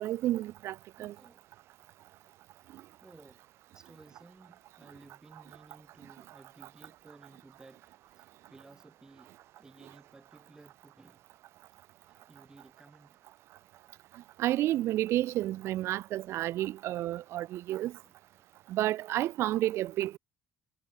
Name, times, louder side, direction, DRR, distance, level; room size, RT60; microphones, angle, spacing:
voice 1, 0.0-1.1 2.7-2.8 14.1-17.9 18.7-20.2, right 14 dB, 65° right, 0.8 m, -31 dB
voice 2, 1.0-1.5 3.0-3.5 3.7-11.3 12.0-13.4 18.0-18.1, right 3 dB, 15° right, 5.1 m, -57 dB
cardioid pair, 145°, 5 cm